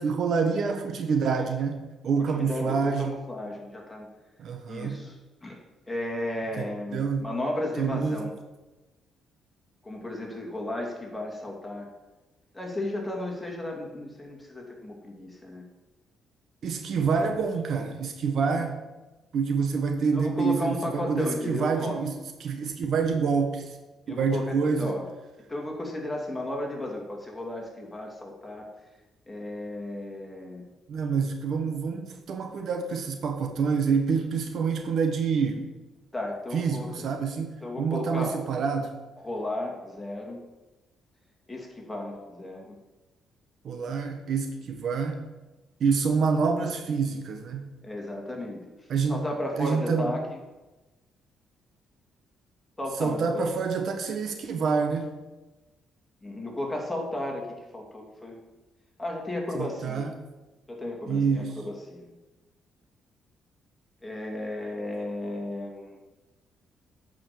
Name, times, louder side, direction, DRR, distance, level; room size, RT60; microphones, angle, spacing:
voice 1, 0.0-3.2 4.4-5.0 6.6-7.3 7.8-8.3 16.6-18.8 19.3-23.8 24.1-24.9 30.9-35.7 36.5-39.0 43.6-45.2 45.8-47.7 48.9-49.2 49.6-50.1 53.0-55.1 59.6-60.1 61.1-61.6, right 5 dB, 65° right, 6 dB, 1.1 m, -27 dB
voice 2, 2.3-4.1 4.7-5.6 5.9-8.3 9.8-11.9 12.5-15.6 20.1-22.0 24.1-25.0 25.5-28.7 29.3-30.6 36.1-36.9 37.6-38.5 39.2-40.4 41.5-42.8 47.8-50.4 52.8-53.5 56.2-58.4 59.0-60.1 60.7-62.1 64.0-66.0, left 1 dB, 10° left, -1 dB, 2.8 m, -34 dB
9.3 x 5.3 x 6.9 m, 1.1 s
cardioid pair, 90°, 0 cm